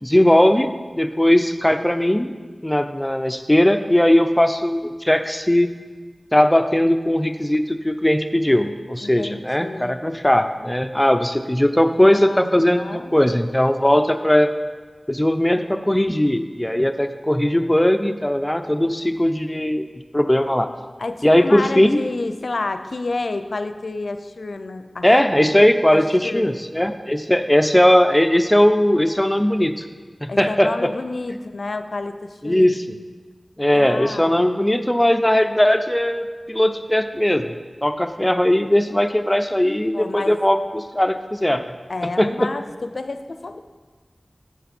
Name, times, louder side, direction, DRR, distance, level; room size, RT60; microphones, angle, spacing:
voice 1, 0.0-2.3 2.6-5.7 6.3-14.5 15.1-19.9 20.1-20.7 21.2-22.0 25.0-29.8 30.2-30.9 32.4-33.0 33.6-41.6 42.2-42.5, left 1 dB, 15° left, 8 dB, 0.6 m, -18 dB
voice 2, 9.0-10.1 12.1-13.1 21.0-25.1 25.9-26.5 30.3-32.7 33.7-34.7 39.9-40.4 41.9-42.7 42.9-43.6, left 3 dB, 85° left, 9 dB, 0.4 m, -30 dB
9.3 x 6.7 x 4.4 m, 1.4 s
wide cardioid pair, 40°, 0 cm